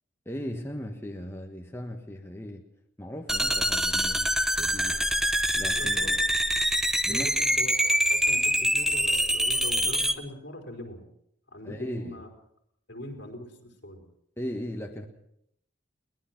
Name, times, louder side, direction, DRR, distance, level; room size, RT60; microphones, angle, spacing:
voice 1, 0.2-2.6 3.0-5.0 5.6-6.2 7.0-7.3 11.6-12.2 14.4-15.1, equal, 15° left, 2 dB, 1.4 m, -37 dB
sound 1, 3.3-10.2, equal, 5° right, 0.9 m, -25 dB
voice 2, 4.8-5.2 5.8-6.1 7.1-11.1 11.5-12.3 12.9-14.0, left 1 dB, 65° left, 3 dB, 4.6 m, -41 dB
22.0 x 19.5 x 6.0 m, 0.74 s
head